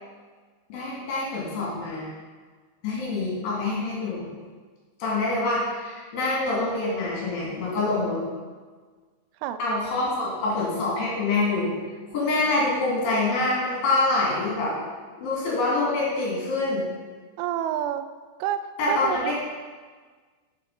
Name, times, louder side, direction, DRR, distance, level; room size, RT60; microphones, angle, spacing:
voice 1, 0.7-2.1 2.8-4.3 5.0-8.2 9.6-11.7 12.1-14.7 15.2-16.8 18.8-19.3, left 2 dB, 55° left, -6 dB, 3.8 m, -25 dB
voice 2, 17.4-18.0 18.4-18.6 18.9-19.3, right 11 dB, 90° right, 11 dB, 3.0 m, -28 dB
7.6 x 7.5 x 5.4 m, 1.5 s
omnidirectional pair, 5.4 m